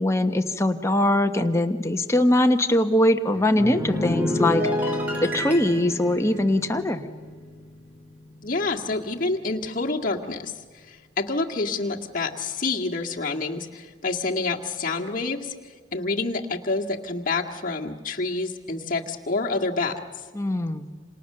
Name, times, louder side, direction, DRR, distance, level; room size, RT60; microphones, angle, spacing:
voice 1, 0.0-4.7 5.2-7.0 20.3-20.9, left 1 dB, 15° left, 6 dB, 1.1 m, -22 dB
sound 1, 3.3-8.0 8.2-8.6, equal, 10° right, 3.1 m, -29 dB
voice 2, 8.4-15.5 15.9-20.0, left 3 dB, 40° left, 0 dB, 1.9 m, -28 dB
28.0 x 27.0 x 6.7 m, 1.5 s
head